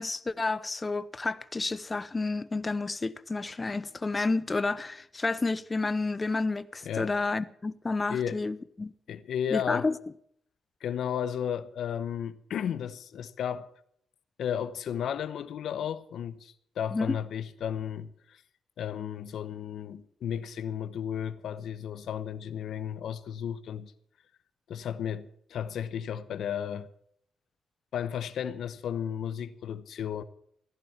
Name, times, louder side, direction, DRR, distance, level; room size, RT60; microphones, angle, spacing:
voice 1, 0.0-8.9 9.5-10.0 16.9-17.2, left 3 dB, 25° left, 0.7 m, -30 dB
voice 2, 8.1-8.4 9.1-9.9 10.8-13.7 14.4-18.4 18.8-23.9 24.7-26.9 27.9-30.2, left 9 dB, 75° left, 1.0 m, -34 dB
15.5 x 11.0 x 7.3 m
cardioid pair, 75°, 0 cm